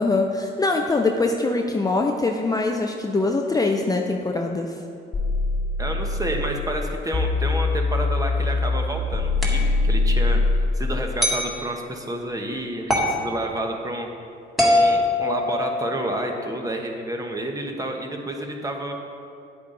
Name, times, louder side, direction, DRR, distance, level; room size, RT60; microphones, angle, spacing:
voice 1, 0.0-4.8, left 3 dB, 20° left, 2 dB, 0.6 m, -23 dB
sound 1, 5.1-6.6 7.1-10.6, left 3 dB, 35° left, 1.3 m, -22 dB
voice 2, 5.8-10.4 10.8-14.1 14.6-18.9, right 1 dB, 15° right, 2 dB, 1.2 m, -29 dB
sound 2, 9.4-9.7 11.2-11.5 12.9-13.2 14.6-16.0, left 1 dB, ahead, 1.9 m, -21 dB
9.8 x 8.3 x 3.9 m, 2.5 s
cardioid pair, 90°, 20 cm